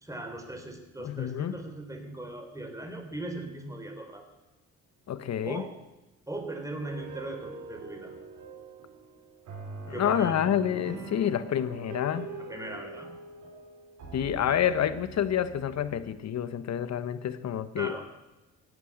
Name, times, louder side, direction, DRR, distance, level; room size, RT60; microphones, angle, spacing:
voice 1, 0.0-4.3 5.4-5.7 6.3-8.1 9.9-10.3 12.5-13.1 14.4-14.6 17.8-18.1, right 1 dB, 10° right, 5 dB, 3.5 m, -39 dB
voice 2, 1.0-1.6 5.1-5.6 9.9-12.3 14.1-17.9, left 9 dB, 60° left, 13 dB, 1.2 m, -28 dB
sound 1, 6.8-16.1, right 3 dB, 75° right, 4.8 m, -43 dB
16.0 x 9.7 x 8.7 m, 1.0 s
cardioid pair, 90°, 30 cm